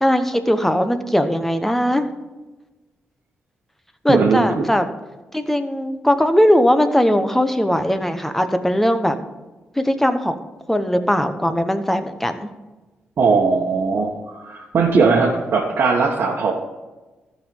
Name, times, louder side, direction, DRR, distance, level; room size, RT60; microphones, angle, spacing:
voice 1, 0.0-2.1 4.0-4.9 5.3-9.2 9.8-10.4 10.7-12.5, equal, 5° left, 9 dB, 1.0 m, -19 dB
voice 2, 4.1-4.7 13.2-16.5, right 4 dB, 60° right, -3 dB, 1.3 m, -19 dB
13.5 x 5.5 x 5.4 m, 1.2 s
cardioid pair, 80°, 4 cm